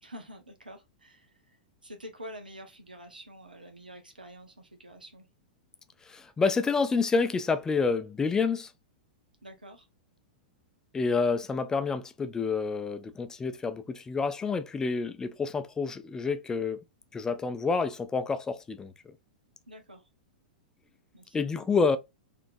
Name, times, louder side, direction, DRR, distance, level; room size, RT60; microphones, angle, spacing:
voice 1, 0.0-5.3 9.4-9.9 19.7-20.1 21.1-21.6, equal, 80° right, 1.2 m, -47 dB
voice 2, 6.1-8.7 10.9-16.8 17.1-18.9 21.3-22.0, left 4 dB, 15° left, 0.5 m, -28 dB
4.2 x 3.1 x 2.6 m
figure-of-eight pair, 100°, 5 cm